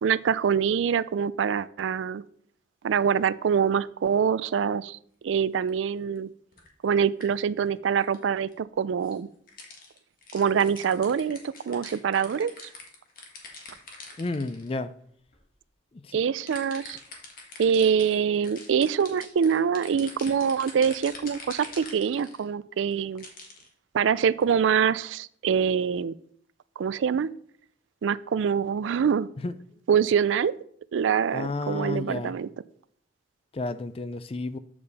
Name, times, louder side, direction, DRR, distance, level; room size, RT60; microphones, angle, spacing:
voice 1, 0.0-2.2 2.8-5.0 5.2-6.3 6.8-9.3 10.3-12.5 16.1-17.0 17.6-23.2 23.9-26.2 26.8-27.3 28.0-29.3 29.9-30.5 30.9-32.5, right 7 dB, 80° right, 0.4 m, -25 dB
sound 1, 5.7-5.8 6.5-7.0 7.2-7.3 7.7-7.8 8.0-8.2 8.5-8.6 9.0-9.2 9.5-14.7 15.3-15.4 16.5-22.5 22.9-23.7 24.2-24.4, left 3 dB, 50° left, 1.6 m, -45 dB
voice 2, 14.2-14.9 15.9-16.2 29.4-29.6 31.3-32.3 33.5-34.6, left 2 dB, 30° left, 0.4 m, -31 dB
8.6 x 7.0 x 4.1 m
head